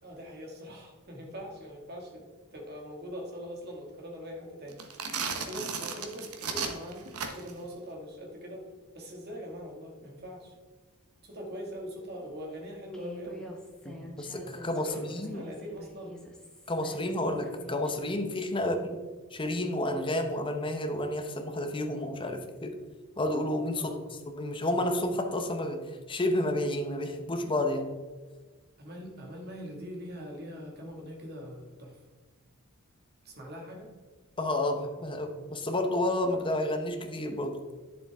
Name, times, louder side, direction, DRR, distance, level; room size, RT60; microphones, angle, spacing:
voice 1, 0.0-4.8 5.3-7.1 7.3-8.6 8.9-10.6 11.2-13.5 14.8-16.2 18.5-18.8 23.8-24.0 28.8-32.0 33.2-33.9, equal, 45° right, 0 dB, 2.1 m, -42 dB
sound 1, 4.7-7.6, right 5 dB, 75° right, 1.1 m, -35 dB
Human voice, 12.9-18.1, equal, 5° left, 1.1 m, -47 dB
voice 2, 13.9-15.4 16.7-19.0 19.3-22.8 23.2-24.0 24.3-27.9 34.4-37.6, left 1 dB, 20° left, 5 dB, 0.9 m, -30 dB
10.0 x 7.1 x 3.6 m, 1.4 s
head